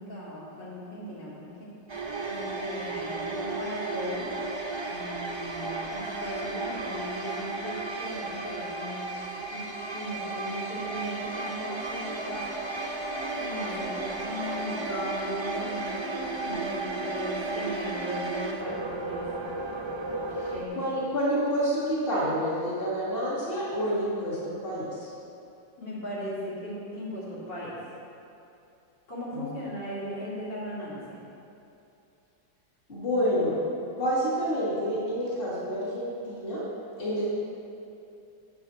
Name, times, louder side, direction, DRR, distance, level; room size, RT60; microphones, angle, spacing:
voice 1, 0.0-1.7 2.2-4.4 4.9-9.1 9.5-9.6 9.9-12.5 13.4-19.3 20.5-20.8 25.8-27.8 29.1-31.2, equal, 60° left, -8 dB, 3.0 m, -37 dB
sound 1, 1.9-20.6, right 2 dB, 45° right, 0.3 m, -34 dB
voice 2, 20.4-25.1 29.3-29.5 32.9-33.6 34.0-36.6 37.0-37.3, equal, 25° left, -8 dB, 2.7 m, -28 dB
13.0 x 8.1 x 4.4 m, 2.7 s
omnidirectional pair, 2.2 m